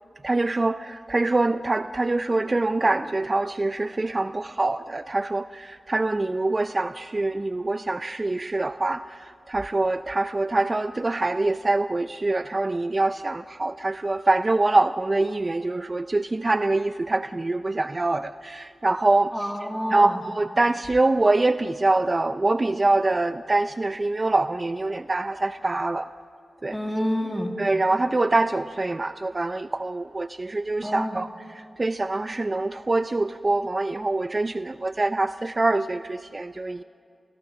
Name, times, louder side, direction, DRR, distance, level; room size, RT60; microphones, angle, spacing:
voice 1, 0.2-19.3 19.9-26.1 26.6-26.8 27.6-31.3 31.8-36.8, right 2 dB, 30° right, 12 dB, 0.4 m, -24 dB
voice 2, 19.3-20.2 26.7-27.5 30.8-31.2, equal, ahead, 3 dB, 1.7 m, -28 dB
29.5 x 16.5 x 6.7 m, 2.3 s
cardioid pair, 70°, 0 cm